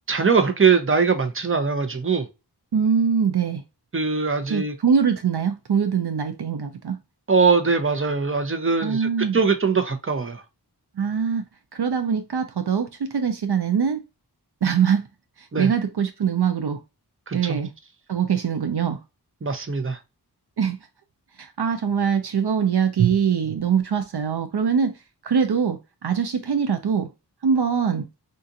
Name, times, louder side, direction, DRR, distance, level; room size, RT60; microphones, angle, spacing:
voice 1, 0.1-2.3 3.9-4.7 7.3-10.4 15.5-15.7 17.3-17.6 19.4-20.0, right 5 dB, 30° right, 0.7 m, -21 dB
voice 2, 2.7-3.6 4.5-7.0 8.8-9.4 11.0-11.5 11.7-14.0 14.6-15.1 15.4-16.8 17.3-17.7 18.1-19.0 20.6-20.8 21.4-24.9 25.2-27.1 27.4-28.1, right 7 dB, 70° right, 0.5 m, -23 dB
3.8 x 2.4 x 2.6 m
wide cardioid pair, 45°, 41 cm